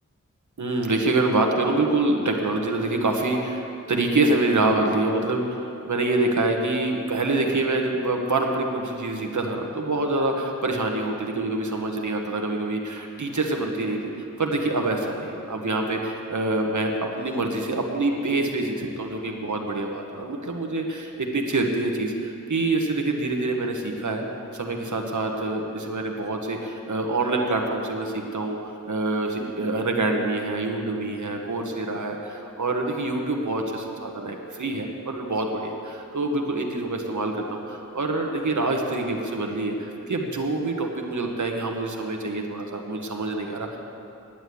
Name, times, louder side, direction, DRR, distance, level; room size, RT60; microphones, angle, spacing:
voice 1, 0.6-24.2 24.5-43.8, right 2 dB, 70° right, 2 dB, 1.4 m, -26 dB
10.0 x 9.5 x 8.4 m, 2.7 s
wide cardioid pair, 50°, 31 cm